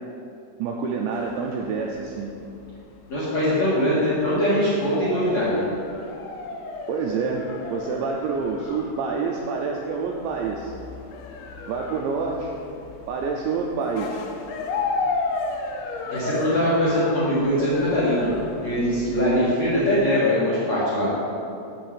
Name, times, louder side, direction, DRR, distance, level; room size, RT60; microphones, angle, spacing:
voice 1, 0.6-2.4 6.9-7.4 7.7-10.7 11.7-12.5 13.1-14.2, right 5 dB, 85° right, 0 dB, 2.6 m, -27 dB
sound 1, 1.1-20.2, left 3 dB, 80° left, 2.9 m, -34 dB
voice 2, 3.1-5.6 16.1-18.3 18.6-21.1, equal, 50° left, -10 dB, 2.1 m, -22 dB
7.5 x 6.2 x 6.9 m, 2.6 s
omnidirectional pair, 5.7 m